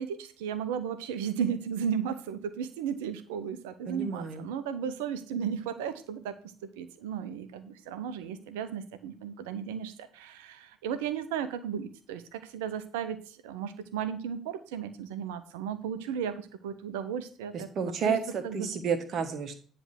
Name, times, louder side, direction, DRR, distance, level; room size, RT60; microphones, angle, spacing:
voice 1, 0.0-6.4 6.8-17.7 18.0-18.1 18.4-18.7, right 8 dB, 70° right, 12 dB, 0.7 m, -35 dB
voice 2, 3.9-4.4 17.5-19.5, right 6 dB, 45° right, 8 dB, 1.2 m, -31 dB
9.9 x 3.4 x 6.3 m, 0.40 s
figure-of-eight pair, 50°, 0 cm